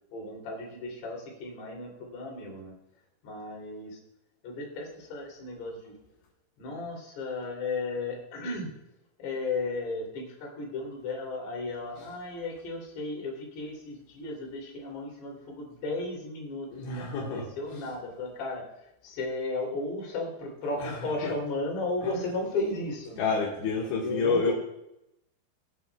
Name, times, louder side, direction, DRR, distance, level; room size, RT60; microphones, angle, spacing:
voice 1, 0.1-2.7 3.2-4.0 4.4-5.9 6.6-8.7 9.2-23.3 24.0-24.5, left 2 dB, 65° left, -1 dB, 5.1 m, -35 dB
voice 2, 16.7-17.5 20.8-20.9 21.2-21.3 22.0-22.2 23.2-24.5, left 4 dB, 85° left, -4 dB, 4.0 m, -28 dB
22.5 x 9.6 x 2.3 m, 0.83 s
omnidirectional pair, 5.2 m